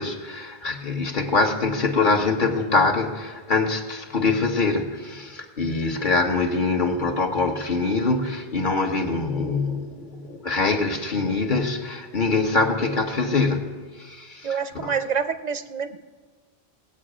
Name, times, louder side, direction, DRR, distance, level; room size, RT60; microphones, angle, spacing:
voice 1, 0.0-14.9, left 3 dB, 50° left, 1.2 m, -24 dB
voice 2, 14.4-16.0, right 6 dB, 50° right, 0.5 m, -27 dB
19.5 x 8.1 x 4.9 m
omnidirectional pair, 1.0 m